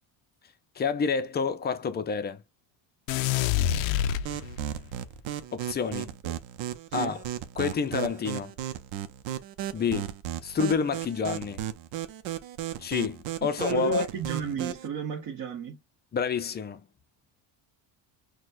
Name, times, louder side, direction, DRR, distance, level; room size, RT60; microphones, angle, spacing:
voice 1, 0.8-2.4 5.5-6.2 6.9-7.2 7.6-8.5 9.7-10.1 10.4-11.6 12.8-14.1 16.1-16.8, left 5 dB, 25° left, 0.4 m, -28 dB
sound 1, 3.1-4.9, left 11 dB, 90° left, 0.5 m, -27 dB
sound 2, 4.3-14.9, right 11 dB, 85° right, 0.7 m, -35 dB
voice 2, 13.7-15.8, right 5 dB, 50° right, 1.1 m, -32 dB
6.2 x 2.2 x 2.5 m
cardioid pair, 145°, 44 cm